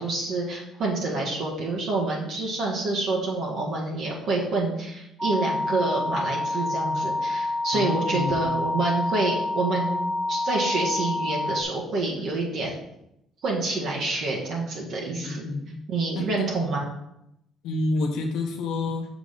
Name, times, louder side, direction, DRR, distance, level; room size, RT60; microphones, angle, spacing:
voice 1, 0.0-12.7 13.4-15.5 15.9-16.8, right 3 dB, 55° right, -3 dB, 1.5 m, -27 dB
sound 1, 5.2-11.6, left 2 dB, 5° right, 0.6 m, -28 dB
voice 2, 7.7-8.6 15.2-15.8 16.1-16.7 17.6-19.1, left 2 dB, 80° left, 2 dB, 0.8 m, -29 dB
6.2 x 3.9 x 5.1 m, 0.81 s
cardioid pair, 130°, 0 cm